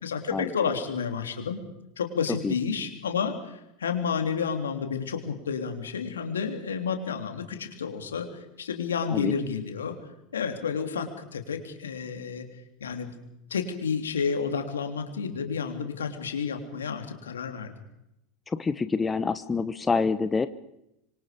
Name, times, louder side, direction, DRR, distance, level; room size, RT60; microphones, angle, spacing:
voice 1, 0.0-1.6 2.0-8.3 8.6-10.0 10.3-12.5 12.8-13.2 13.5-17.7, left 6 dB, 80° left, 6 dB, 3.4 m, -30 dB
voice 2, 18.5-20.5, left 4 dB, 20° left, 13 dB, 1.0 m, -26 dB
26.0 x 24.0 x 5.3 m, 0.84 s
figure-of-eight pair, 85°, 0 cm